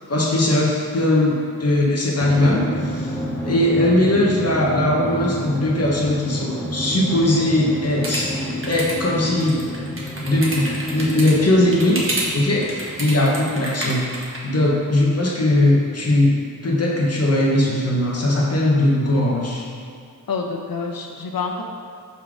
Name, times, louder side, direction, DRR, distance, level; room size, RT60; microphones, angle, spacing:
voice 1, 0.1-3.1 3.4-8.3 8.7-9.6 10.2-12.0 12.3-14.1 14.4-16.4 16.6-19.6, left 1 dB, 40° left, -3 dB, 1.3 m, -19 dB
Drum, 2.2-13.2, equal, 5° left, 1.4 m, -29 dB
sound 1, 8.0-8.9 9.4-11.3 11.7-12.2 12.5-14.4, right 1 dB, 35° right, 1.3 m, -29 dB
voice 2, 20.3-21.6, left 4 dB, 70° left, 2 dB, 0.8 m, -27 dB
5.5 x 3.9 x 4.9 m, 2.4 s
cardioid pair, 60°, 36 cm